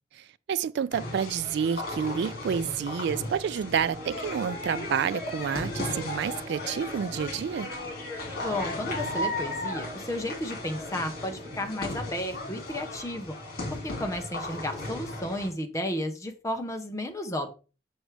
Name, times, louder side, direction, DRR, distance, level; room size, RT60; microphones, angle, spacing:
voice 1, 0.1-7.7, right 7 dB, 65° right, 0.3 m, -29 dB
sound 1, 0.9-15.5, left 1 dB, 55° left, 2.2 m, -36 dB
sound 2, 3.7-11.7, right 2 dB, 45° right, 1.4 m, -47 dB
voice 2, 8.4-13.4 13.7-17.5, left 1 dB, 15° left, 1.0 m, -33 dB
6.2 x 6.1 x 3.3 m
head